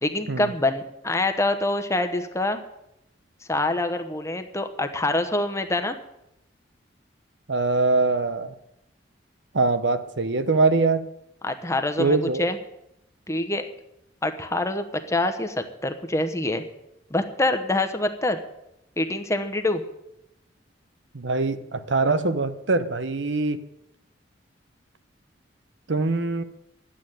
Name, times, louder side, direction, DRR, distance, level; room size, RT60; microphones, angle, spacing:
voice 1, 0.0-2.6 3.5-6.0 11.4-12.6 13.3-13.7 14.2-16.6 17.1-18.4 19.0-19.8, left 2 dB, 15° left, 7 dB, 1.1 m, -25 dB
voice 2, 7.5-8.5 9.5-11.1 12.0-12.5 21.1-23.6 25.9-26.4, right 3 dB, 70° right, 12 dB, 0.9 m, -23 dB
11.5 x 8.8 x 9.1 m, 0.84 s
head